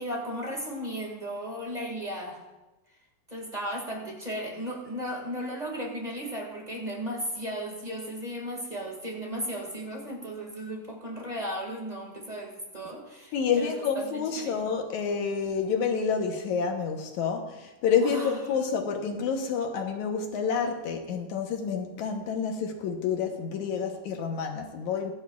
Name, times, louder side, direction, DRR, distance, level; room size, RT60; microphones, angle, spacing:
voice 1, 0.0-2.4 3.3-14.6 18.0-18.4, equal, 20° right, 1.1 m, -35 dB
voice 2, 13.3-25.1, left 6 dB, 70° left, 2.1 m, -29 dB
20.0 x 11.5 x 2.4 m
omnidirectional pair, 4.0 m